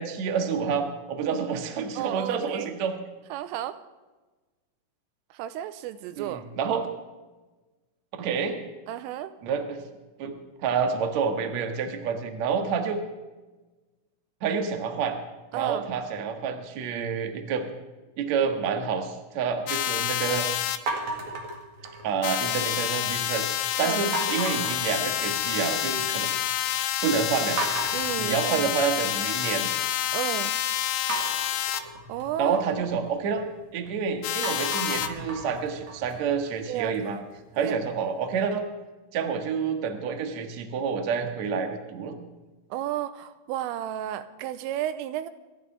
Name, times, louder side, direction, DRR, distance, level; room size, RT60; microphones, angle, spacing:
voice 1, 0.0-2.9 6.2-6.9 8.2-8.6 9.4-9.8 10.2-10.3 10.6-13.0 14.4-15.2 15.5-17.7 18.2-20.5 22.0-23.5 23.8-26.3 27.0-27.6 28.2-29.7 32.4-33.4 33.7-37.2 37.5-38.6 39.1-42.2, right 6 dB, 65° right, 4 dB, 1.7 m, -28 dB
voice 2, 2.0-2.7 3.3-3.8 5.3-6.4 8.9-9.3 15.5-15.9 23.8-24.3 27.9-28.7 30.1-30.5 32.1-32.7 32.9-33.0 36.7-37.0 37.6-37.8 42.7-45.3, right 12 dB, 90° right, 12 dB, 3.3 m, -32 dB
sound 1, 19.7-20.8 22.2-31.8 34.2-35.1, left 13 dB, 80° left, 3.2 m, -28 dB
sound 2, 20.9-22.3 22.7-23.3 24.1-25.7 26.0-26.6 26.9-27.0 27.6-29.7 31.1-33.9 34.3-37.2, right 2 dB, 50° right, 2.5 m, -36 dB
27.5 x 11.5 x 3.3 m, 1.2 s
omnidirectional pair, 5.8 m